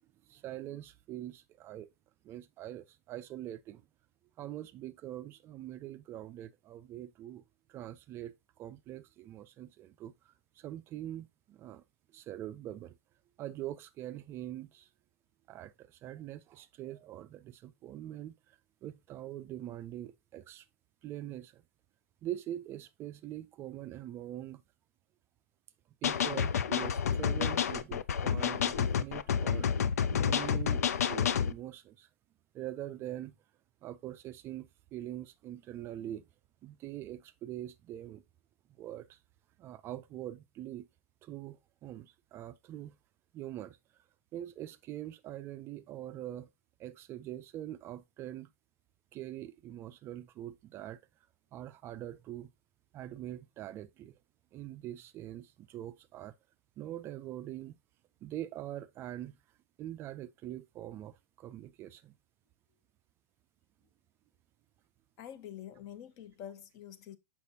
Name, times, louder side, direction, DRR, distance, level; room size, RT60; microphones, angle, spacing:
voice 1, 0.3-1.9 2.2-3.8 4.4-7.4 7.7-11.8 12.1-13.0 13.4-14.9 15.5-20.7 21.0-21.6 22.2-24.6 26.0-29.7 30.1-32.1 32.5-33.3 33.8-36.3 36.6-38.2 38.8-39.2 39.6-40.9 41.2-43.0 43.3-43.8 44.3-46.5 46.8-48.5 49.1-51.0 51.5-52.5 52.9-54.2 54.5-56.3 56.8-57.7 58.2-59.4 59.8-62.1, right 13 dB, 30° right, 0.4 m, -43 dB
sound 1, 26.0-31.5, left 7 dB, 80° left, 0.5 m, -29 dB
voice 2, 65.2-67.2, left 10 dB, 40° left, 0.8 m, -46 dB
6.5 x 5.6 x 2.8 m
hypercardioid pair, 125°, 8 cm